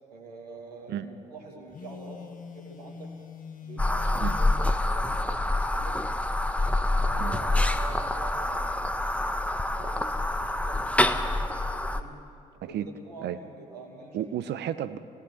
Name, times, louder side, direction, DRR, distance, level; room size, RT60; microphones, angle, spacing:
voice 1, 0.1-2.2 2.5-3.1 3.6-6.1 6.9-9.4 9.8-12.2 12.6-14.3, right 3 dB, 90° right, 1 dB, 2.5 m, -46 dB
Telephone, 1.7-4.8, left 6 dB, 45° left, 1.6 m, -43 dB
sound 1, 3.8-12.0, left 1 dB, 5° left, 1.3 m, -26 dB
voice 2, 14.1-15.0, right 11 dB, 60° right, 14 dB, 1.0 m, -32 dB
26.5 x 18.5 x 5.9 m, 2.4 s
hypercardioid pair, 45°, 20 cm